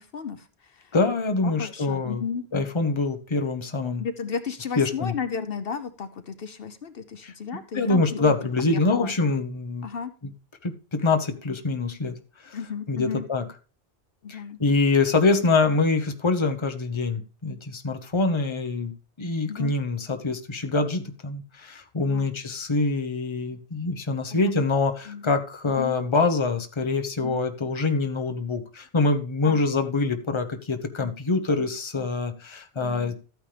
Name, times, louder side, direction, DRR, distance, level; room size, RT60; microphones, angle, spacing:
voice 1, 0.0-0.9 1.4-2.5 4.0-8.4 8.7-9.1 9.8-10.1 12.5-13.2 14.2-14.6 19.5-19.8 22.0-22.3 24.3-24.7 25.1-25.2 25.8-26.0 27.2-27.4 29.4-29.6 32.7-33.1, left 6 dB, 65° left, 11 dB, 1.0 m, -34 dB
voice 2, 0.9-2.2 2.5-4.0 4.8-5.1 7.2-9.9 10.2-10.3 10.6-12.6 12.9-13.4 14.3-18.9 19.2-33.2, left 3 dB, 30° left, 6 dB, 1.0 m, -25 dB
13.5 x 9.3 x 3.3 m, 0.37 s
omnidirectional pair, 1.0 m